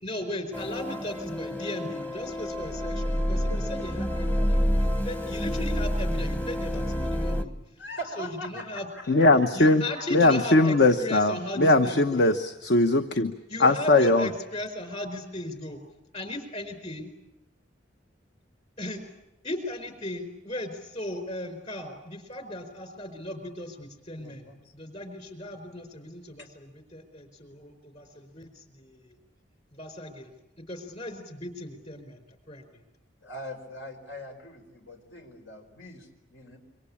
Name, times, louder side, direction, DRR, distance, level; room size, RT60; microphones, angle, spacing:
voice 1, 0.0-7.5 8.2-8.9 9.5-12.3 13.5-15.8 16.1-17.1 18.8-19.0 19.4-29.2 29.7-30.3 30.7-32.2 32.5-32.6, left 1 dB, 35° left, 8 dB, 4.6 m, -37 dB
sound 1, 0.5-7.5, equal, 10° left, 0.9 m, -28 dB
voice 2, 3.5-3.9 7.8-9.3 9.6-10.0 24.2-24.7 26.4-26.5 33.2-36.6, equal, 85° left, 5 dB, 4.5 m, -42 dB
voice 3, 9.1-9.8 10.1-13.3 13.6-14.3, left 2 dB, 65° left, 8 dB, 1.1 m, -20 dB
27.0 x 24.5 x 8.6 m, 0.92 s
head